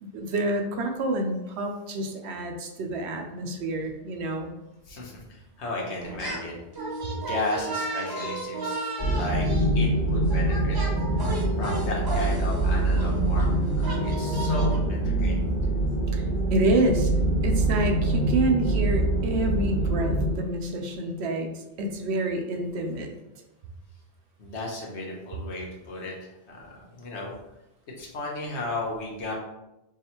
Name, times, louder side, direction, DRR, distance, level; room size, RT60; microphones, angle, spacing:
voice 1, 0.0-4.5 16.1-16.2 16.5-17.1 17.4-23.1, right 1 dB, 75° right, 4 dB, 0.9 m, -28 dB
voice 2, 4.8-6.6 7.1-9.5 9.7-10.8 11.5-15.4 24.4-27.3 28.0-29.3, left 2 dB, 80° left, -2 dB, 1.2 m, -34 dB
sound 1, 6.0-6.5 6.7-14.8, right 2 dB, 25° right, 0.6 m, -33 dB
sound 2, 9.0-20.3, right 2 dB, 10° left, 1.2 m, -25 dB
4.7 x 2.4 x 2.9 m, 0.93 s
omnidirectional pair, 1.1 m